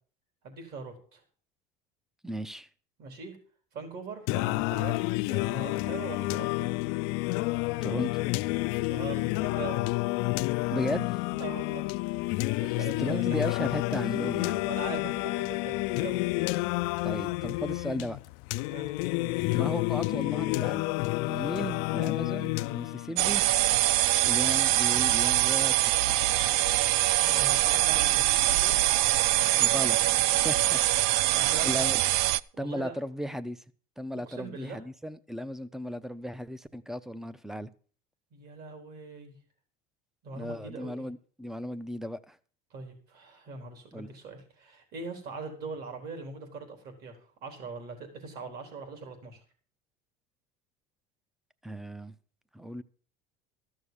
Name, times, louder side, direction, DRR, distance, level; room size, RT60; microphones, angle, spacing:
voice 1, 0.4-1.2 3.0-3.4 3.7-5.0 5.3-6.7 8.9-9.8 11.3-11.9 12.2-13.5 14.7-16.2 18.7-18.9 27.1-28.8 31.3-31.9 32.5-33.0 34.2-34.8 38.3-39.4 40.2-41.1 42.7-49.4, right 4 dB, 50° right, 4.0 m, -41 dB
voice 2, 2.2-2.7 7.8-8.1 10.7-11.1 13.0-14.7 17.0-18.2 19.5-20.9 21.3-23.4 24.2-26.2 29.6-30.8 31.3-32.0 32.6-33.6 34.0-37.7 40.3-42.4 43.9-44.1 51.6-52.1 52.5-52.8, equal, ahead, 0.5 m, -36 dB
Singing, 4.3-23.3, left 22 dB, 70° left, 0.4 m, -29 dB
sound 1, 23.2-32.4, right 16 dB, 80° right, 0.4 m, -24 dB
13.5 x 6.4 x 7.1 m
cardioid pair, 135°, 20 cm